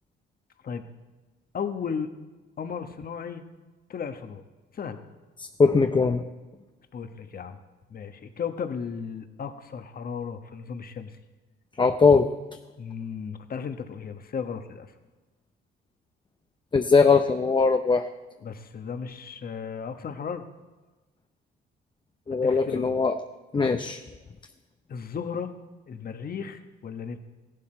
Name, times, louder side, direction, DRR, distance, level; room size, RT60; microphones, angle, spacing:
voice 1, 1.5-2.1 2.6-3.4 3.9-4.4 4.7-5.0 6.9-7.6 7.9-11.2 12.8-14.9 18.4-20.4 22.3-23.0 24.9-25.5 25.9-27.2, left 6 dB, 50° left, 8 dB, 1.2 m, -35 dB
voice 2, 5.4-6.2 11.8-12.3 16.7-18.1 22.3-23.2 23.5-24.0, left 4 dB, 25° left, 7 dB, 0.6 m, -20 dB
16.0 x 11.5 x 4.5 m, 1.2 s
cardioid pair, 90°, 20 cm